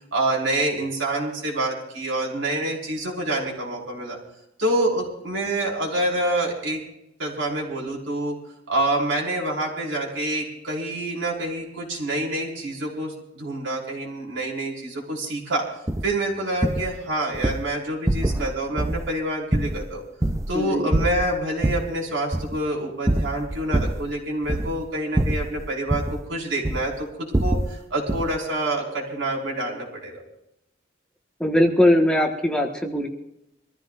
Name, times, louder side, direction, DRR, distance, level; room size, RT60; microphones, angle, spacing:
voice 1, 0.1-4.2 4.6-6.8 7.2-8.4 8.7-15.7 16.0-20.0 20.5-30.2, right 1 dB, 75° right, -2 dB, 5.2 m, -27 dB
sound 1, 15.9-16.1 16.6-16.9 17.3-17.6 18.1-18.5 18.8-19.1 19.5-20.6 20.9-21.9 22.3-22.6 23.1-24.1 24.4-24.9 25.1-26.2 26.6-26.9 27.3-27.8 28.1-28.4, right 1 dB, 15° right, 0.6 m, -24 dB
voice 2, 20.5-20.9 31.4-33.1, left 1 dB, 5° left, 0 dB, 1.5 m, -20 dB
25.5 x 15.0 x 2.6 m, 0.85 s
head